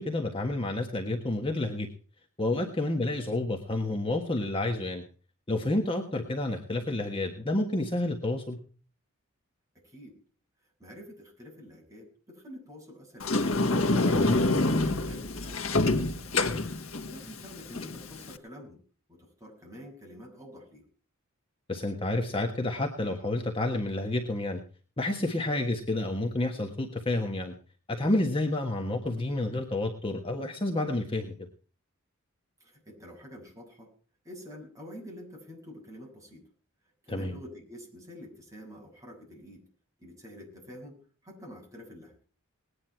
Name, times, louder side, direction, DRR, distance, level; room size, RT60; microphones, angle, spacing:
voice 1, 0.0-1.9 2.4-5.0 5.5-8.6 14.1-14.4 21.7-24.6 25.0-27.5 27.9-31.3 37.1-37.4, left 2 dB, 25° left, 3 dB, 1.5 m, -29 dB
voice 2, 9.8-10.2 10.8-13.6 14.1-16.6 17.0-18.8 19.1-20.8 25.2-25.4 32.6-33.9 34.2-36.4 37.0-39.6 40.0-41.0 41.2-42.1, equal, 15° right, 0 dB, 6.7 m, -48 dB
Sliding door, 13.2-18.4, left 2 dB, 70° left, 1.6 m, -27 dB
19.5 x 10.0 x 4.5 m, 0.40 s
head